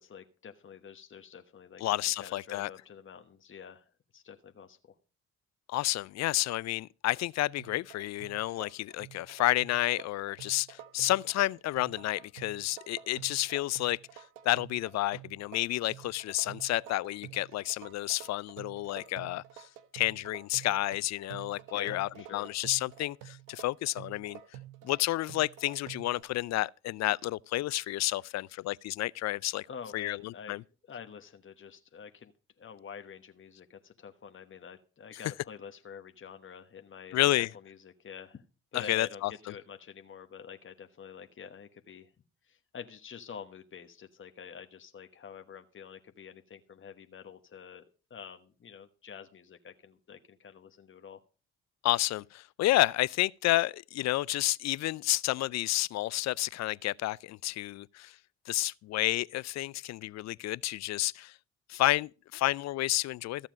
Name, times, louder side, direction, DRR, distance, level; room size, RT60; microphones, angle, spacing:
voice 1, 0.0-1.8 2.2-3.8 4.1-4.8 21.7-22.5 29.7-30.6 30.9-32.3 32.6-38.4 38.7-39.2 39.5-42.1 42.5-47.8 48.1-51.2, left 7 dB, 40° left, 1.2 m, -47 dB
voice 2, 1.8-2.7 5.7-19.7 19.9-24.4 24.8-29.7 29.9-30.6 37.1-37.5 38.7-39.3 51.8-58.2 58.5-61.4 61.7-63.5, left 16 dB, 55° left, 0.5 m, -30 dB
sound 1, 7.6-26.2, right 12 dB, 80° right, 1.1 m, -49 dB
14.0 x 7.3 x 5.1 m
hypercardioid pair, 55°, 32 cm